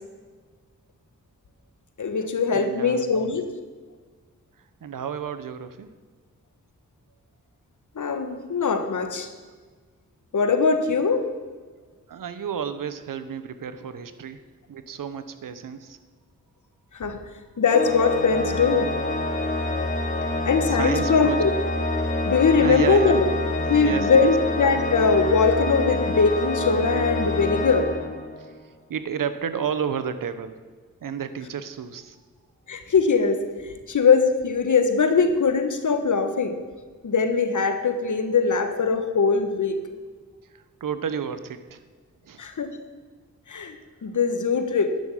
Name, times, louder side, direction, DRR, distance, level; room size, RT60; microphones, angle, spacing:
voice 1, 2.0-3.4 7.9-9.3 10.3-11.3 16.9-17.2 17.6-18.9 20.4-21.5 22.2-23.2 23.7-27.9 32.7-33.5 33.9-36.5 37.0-39.8 42.4-42.7 43.5-43.8 44.0-45.0, left 5 dB, 65° left, 8 dB, 1.5 m, -21 dB
voice 2, 2.5-3.2 4.8-5.9 12.1-14.4 14.7-16.0 20.2-20.4 20.7-21.4 22.5-23.2 23.5-24.3 28.4-28.5 28.9-30.6 31.0-32.2 40.5-41.8 42.2-42.4, right 7 dB, 80° right, 11 dB, 1.0 m, -31 dB
Organ, 17.7-28.6, left 2 dB, 25° left, 2.5 m, -27 dB
11.5 x 6.4 x 8.4 m, 1.4 s
cardioid pair, 50°, 32 cm